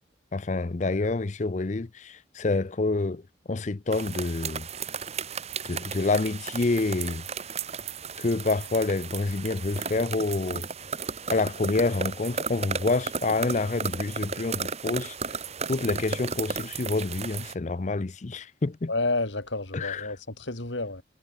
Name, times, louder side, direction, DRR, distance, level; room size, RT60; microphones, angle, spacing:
voice 1, 0.3-3.2 3.5-4.7 5.7-7.2 8.2-10.6 11.3-15.1 15.7-18.9 19.7-20.1, left 3 dB, 40° left, 0.5 m, -27 dB
sound 1, 3.9-17.5, right 5 dB, 35° right, 1.8 m, -34 dB
voice 2, 18.9-21.0, left 2 dB, 75° left, 3.0 m, -30 dB
head